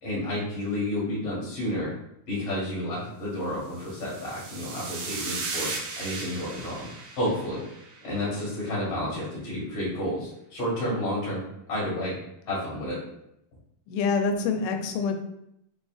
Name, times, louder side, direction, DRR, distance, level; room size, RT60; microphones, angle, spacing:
voice 1, 0.0-1.9 2.3-5.7 6.0-6.9 7.1-7.6 8.0-11.4 11.7-12.1 12.5-13.0, left 1 dB, 60° left, -7 dB, 1.5 m, -30 dB
sound 1, 3.8-8.3, right 4 dB, 85° right, 2.8 m, -36 dB
voice 2, 13.9-15.2, left 4 dB, 90° left, 5 dB, 2.7 m, -26 dB
6.5 x 2.5 x 2.3 m, 0.79 s
omnidirectional pair, 4.7 m